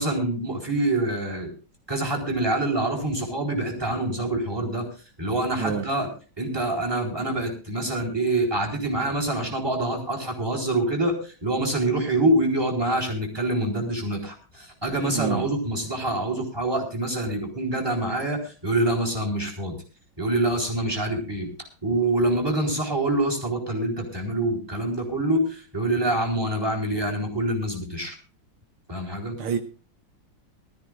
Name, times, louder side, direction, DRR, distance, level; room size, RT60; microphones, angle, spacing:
voice 1, 0.0-1.5 1.9-4.9 5.2-6.1 6.4-19.8 20.2-21.5 21.8-28.2 28.9-29.4, right 1 dB, 10° right, -1 dB, 4.0 m, -26 dB
voice 2, 15.1-15.4 29.4-29.6, right 7 dB, 75° right, 8 dB, 1.8 m, -27 dB
22.0 x 13.5 x 2.5 m, 0.35 s
omnidirectional pair, 2.4 m